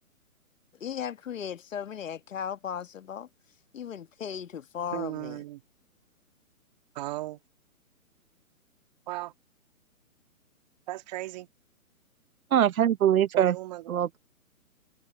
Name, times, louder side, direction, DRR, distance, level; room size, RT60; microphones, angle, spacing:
voice 1, 0.8-3.3 3.7-5.4, left 8 dB, 60° left, 1.6 m, -36 dB
voice 2, 4.9-5.6 6.9-7.4 9.1-9.3 10.9-11.5 13.3-14.0, right 17 dB, 30° right, 2.2 m, -36 dB
voice 3, 12.5-13.5 13.9-14.2, right 10 dB, 75° right, 0.7 m, -22 dB
hypercardioid pair, 155°, 43 cm